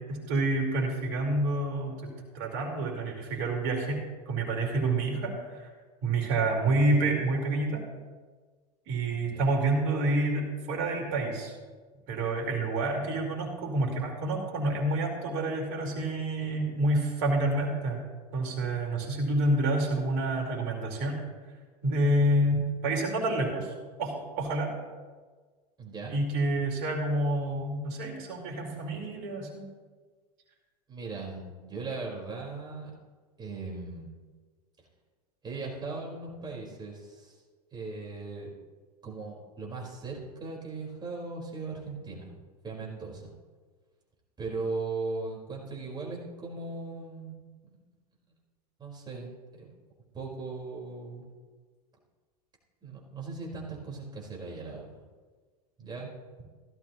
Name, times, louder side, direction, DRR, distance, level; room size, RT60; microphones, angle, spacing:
voice 1, 0.0-4.0 4.3-5.7 6.0-7.8 8.9-11.5 12.1-18.0 18.3-21.2 21.8-23.7 24.0-24.7 26.1-29.7, right 2 dB, 55° right, 0 dB, 4.4 m, -28 dB
voice 2, 9.1-9.5 25.8-26.1 30.9-32.9 33.4-34.1 34.8-34.9 35.4-37.4 37.7-38.5 39.0-42.4 42.6-43.3 44.4-47.3 47.7-47.8 48.8-49.7 50.1-51.3 52.8-55.0 55.8-56.1, right 3 dB, 20° right, -2 dB, 4.7 m, -38 dB
17.0 x 13.0 x 3.1 m, 1.5 s
hypercardioid pair, 95°, 20 cm